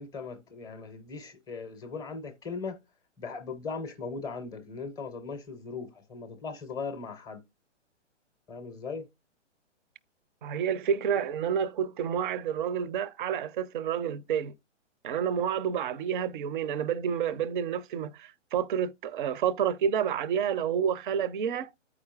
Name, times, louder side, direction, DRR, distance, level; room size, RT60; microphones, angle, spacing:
voice 1, 0.0-2.8 3.2-7.4 8.5-9.1, left 4 dB, 10° left, 0.5 m, -38 dB
voice 2, 10.4-14.5 15.0-21.7, right 8 dB, 45° right, 0.5 m, -29 dB
14.0 x 4.9 x 2.4 m
figure-of-eight pair, 125°, 36 cm